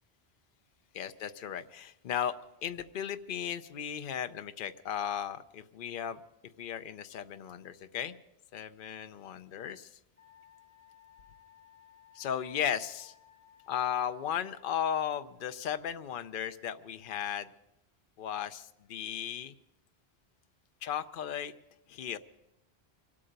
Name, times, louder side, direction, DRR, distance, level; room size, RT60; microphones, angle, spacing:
voice 1, 0.9-2.3 2.6-6.2 6.6-8.2 8.5-9.9 12.2-13.1 13.7-17.5 18.2-19.5 20.8-21.5 21.9-22.2, left 9 dB, 60° left, 10 dB, 0.8 m, -35 dB
Wind instrument woodwind instrument, 10.2-15.1, left 9 dB, 10° left, 7.6 m, -60 dB
25.0 x 8.7 x 5.1 m, 0.87 s
omnidirectional pair, 1.1 m